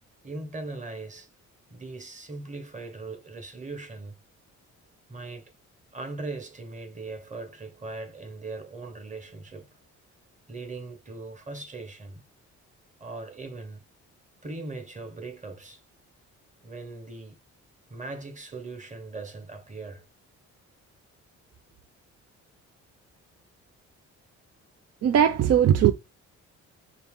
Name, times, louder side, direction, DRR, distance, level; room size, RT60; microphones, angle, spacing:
voice 1, 0.2-1.3 1.7-4.1 5.1-5.5 5.9-9.7 10.5-12.2 13.0-13.8 14.4-15.8 16.6-17.4 17.9-20.0, right 3 dB, 25° right, 1.1 m, -39 dB
voice 2, 25.0-25.9, right 9 dB, 55° right, 0.5 m, -19 dB
4.5 x 2.7 x 3.6 m
cardioid pair, 90°, 30 cm